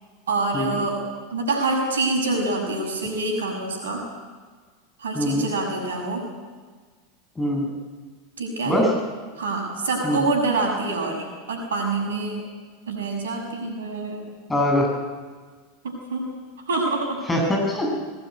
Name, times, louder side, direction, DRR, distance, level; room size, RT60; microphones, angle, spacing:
voice 1, 0.3-1.0 1.3-4.0 5.0-6.3 8.4-8.8 9.4-12.4 12.9-14.3 15.8-16.3 16.7-17.2, right 3 dB, 70° right, 2 dB, 6.7 m, -26 dB
voice 2, 5.1-5.5 7.3-7.7 8.6-8.9 10.0-10.2 14.5-14.9 17.3-18.0, left 1 dB, 10° left, 0 dB, 7.9 m, -22 dB
22.0 x 19.0 x 9.7 m, 1.5 s
figure-of-eight pair, 85°, 0 cm